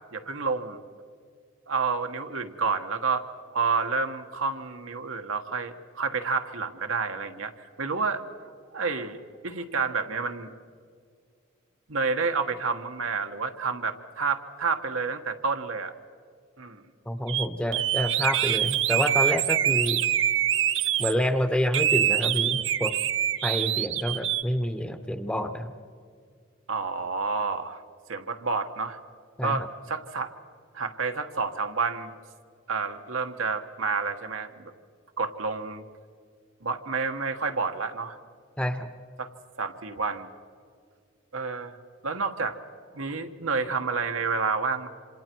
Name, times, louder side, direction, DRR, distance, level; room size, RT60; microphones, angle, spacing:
voice 1, 0.1-0.8 1.7-3.2 3.5-7.5 7.8-8.2 8.7-10.5 11.9-15.9 16.6-16.8 26.7-27.8 28.1-29.0 29.4-30.3 30.7-32.1 32.7-34.7 35.2-35.8 36.6-38.2 39.2-39.3 39.6-40.3 41.3-41.8 42.0-42.6 42.9-44.9, right 4 dB, 85° right, 5 dB, 1.4 m, -29 dB
voice 2, 17.1-20.0 21.0-22.9 23.4-25.7 29.4-29.7 38.6-38.9, equal, 5° left, 8 dB, 0.9 m, -28 dB
sound 1, 17.3-17.5 17.7-21.1 21.7-24.4, right 11 dB, 65° right, 0.7 m, -25 dB
27.5 x 27.0 x 4.6 m, 2.2 s
head